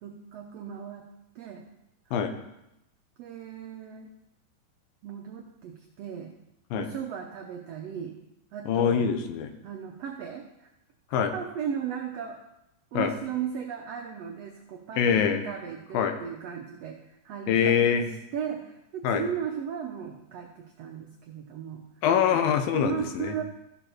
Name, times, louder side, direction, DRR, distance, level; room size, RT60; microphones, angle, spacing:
voice 1, 0.0-1.0 1.3-1.6 2.1-2.4 3.2-4.1 5.0-6.3 6.7-8.2 8.5-9.1 9.6-10.7 11.1-12.4 12.9-17.0 17.2-18.1 18.3-20.5 20.8-21.8 22.7-23.4, right 8 dB, 90° right, 3 dB, 1.4 m, -36 dB
voice 2, 8.7-9.5 11.1-11.3 12.9-13.1 15.0-15.4 15.9-16.1 17.5-18.1 19.0-19.2 22.0-23.4, left 7 dB, 85° left, 7 dB, 2.7 m, -24 dB
14.5 x 7.0 x 4.4 m, 0.87 s
omnidirectional pair, 4.0 m